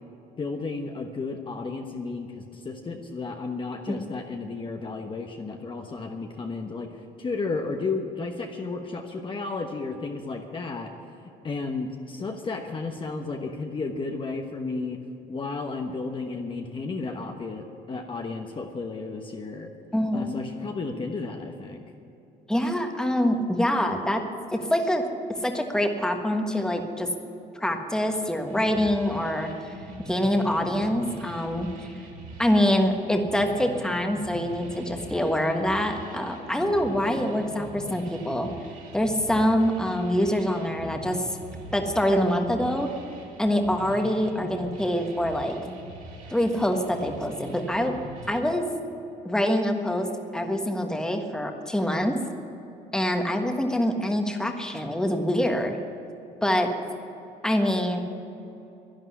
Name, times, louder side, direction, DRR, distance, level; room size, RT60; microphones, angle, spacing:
voice 1, 0.4-10.9 11.4-15.0 15.3-19.7 20.1-21.8, left 3 dB, 30° left, 3 dB, 1.1 m, -33 dB
voice 2, 19.9-20.3 22.5-24.2 24.5-25.0 25.4-27.1 27.5-29.5 30.1-31.7 32.4-38.5 38.9-41.2 41.7-42.9 43.4-45.5 46.3-47.9 48.3-48.7 49.2-50.1 50.3-52.2 52.9-55.8 56.4-56.7 57.4-58.0, equal, 5° left, 4 dB, 1.4 m, -25 dB
sound 1, 28.5-48.4, right 1 dB, 50° right, 3.4 m, -43 dB
11.5 x 11.0 x 9.5 m, 2.9 s
cardioid pair, 110°, 17 cm